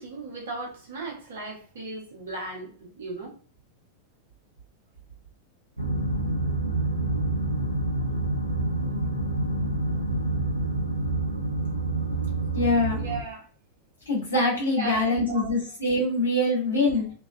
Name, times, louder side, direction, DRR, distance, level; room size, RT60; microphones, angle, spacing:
voice 1, 0.0-3.3 13.0-13.5 14.5-15.5 16.4-16.5 17.0-17.1, right 2 dB, 60° right, 1.1 m, -37 dB
sound 1, 5.8-13.2, right 2 dB, 90° right, 0.4 m, -27 dB
voice 2, 12.5-13.0 14.1-17.1, left 2 dB, 80° left, 1.3 m, -24 dB
3.2 x 2.3 x 2.3 m
figure-of-eight pair, 90°, 0 cm